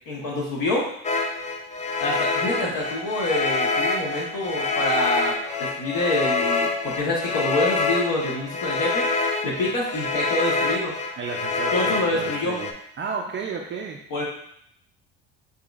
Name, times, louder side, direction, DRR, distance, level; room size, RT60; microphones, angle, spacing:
voice 1, 0.1-0.9 2.0-9.1 9.4-10.9 11.7-12.6 14.1-14.2, left 2 dB, 60° left, -4 dB, 1.3 m, -26 dB
sound 1, 1.0-12.7, left 3 dB, 20° left, 0.4 m, -26 dB
voice 2, 11.2-14.0, right 5 dB, 30° right, 1 dB, 0.5 m, -33 dB
5.5 x 2.7 x 2.5 m, 0.69 s
hypercardioid pair, 70°, 38 cm